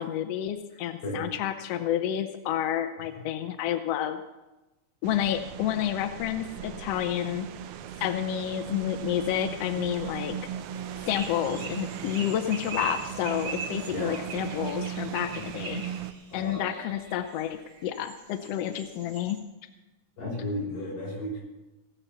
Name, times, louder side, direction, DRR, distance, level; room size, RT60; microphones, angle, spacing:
voice 1, 0.0-4.2 5.0-7.5 8.0-10.4 11.0-15.8 16.3-19.4, left 11 dB, 75° left, 8 dB, 1.5 m, -30 dB
voice 2, 0.7-1.4 3.1-3.3 13.9-14.2 15.4-15.5 16.3-16.6 20.2-21.4, left 1 dB, 50° left, -3 dB, 5.7 m, -34 dB
sound 1, 5.0-16.1, right 10 dB, 80° right, 1.2 m, -38 dB
sound 2, 10.7-19.4, right 4 dB, 65° right, 3.9 m, -41 dB
17.5 x 7.3 x 6.8 m, 1.0 s
omnidirectional pair, 3.5 m